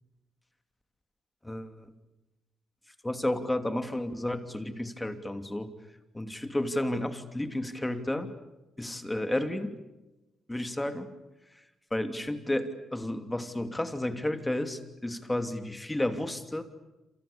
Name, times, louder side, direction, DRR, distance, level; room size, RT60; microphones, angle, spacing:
voice 1, 1.4-1.9 3.0-5.7 6.1-8.3 8.8-9.7 10.5-11.1 11.9-16.6, left 1 dB, 10° left, 8 dB, 2.8 m, -32 dB
28.0 x 28.0 x 7.0 m, 1.0 s
cardioid pair, 90°, 0 cm